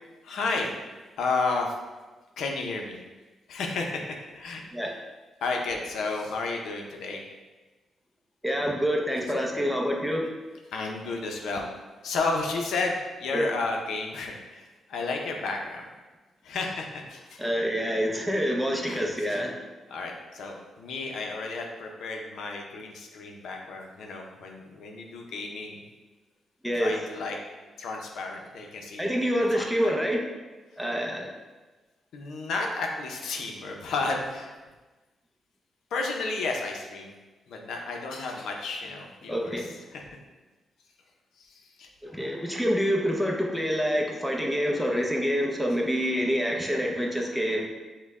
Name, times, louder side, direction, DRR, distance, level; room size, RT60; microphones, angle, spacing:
voice 1, 0.2-0.7 1.2-1.7 2.4-3.0 3.5-4.0 4.3-5.0 5.4-7.2 10.7-11.7 12.0-15.8 16.4-17.4 18.9-19.4 19.9-25.8 26.7-27.4 27.8-29.1 29.4-29.9 32.1-34.6 35.9-37.1 37.5-40.2 41.4-41.9, left 3 dB, 80° left, 1 dB, 0.6 m, -32 dB
voice 2, 8.4-10.3 13.3-13.5 17.4-19.6 26.6-26.9 29.0-30.2 30.8-31.3 39.3-39.7 42.1-47.7, equal, ahead, 0 dB, 0.6 m, -26 dB
6.2 x 2.2 x 3.5 m, 1.2 s
cardioid pair, 105°, 0 cm